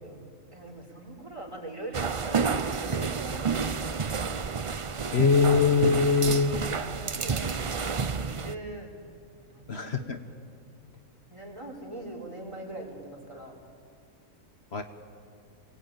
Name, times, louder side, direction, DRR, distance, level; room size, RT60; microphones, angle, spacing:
voice 1, 0.0-4.0 6.4-8.9 9.4-10.3 11.3-13.6, right 2 dB, 20° right, 0 dB, 4.7 m, -42 dB
sound 1, 1.9-8.5, right 5 dB, 40° right, 0.4 m, -30 dB
voice 2, 5.1-6.5 9.7-10.2 14.7-14.8, left 5 dB, 50° left, 6 dB, 1.3 m, -22 dB
28.5 x 20.5 x 9.1 m, 2.4 s
omnidirectional pair, 1.4 m